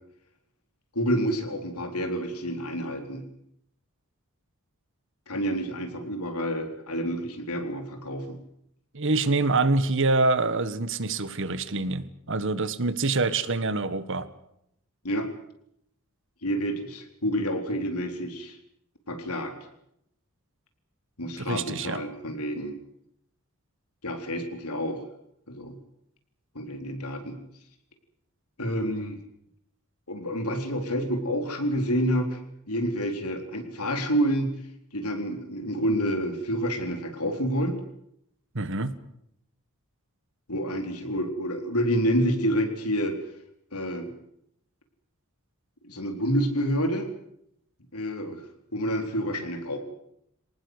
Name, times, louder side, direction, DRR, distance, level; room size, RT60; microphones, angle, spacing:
voice 1, 0.9-3.2 5.3-8.4 15.0-15.3 16.4-18.6 19.1-19.5 21.2-22.8 24.0-25.0 25.5-25.8 26.5-27.4 28.6-29.2 30.1-32.4 32.7-34.6 34.9-37.8 40.5-43.2 43.7-44.1 45.8-47.1 47.9-48.4 48.7-49.8, equal, 85° left, 6 dB, 4.1 m, -28 dB
voice 2, 8.9-14.3 21.4-22.0 38.5-38.9, right 3 dB, 60° right, 14 dB, 1.5 m, -26 dB
25.0 x 19.0 x 8.2 m, 0.75 s
head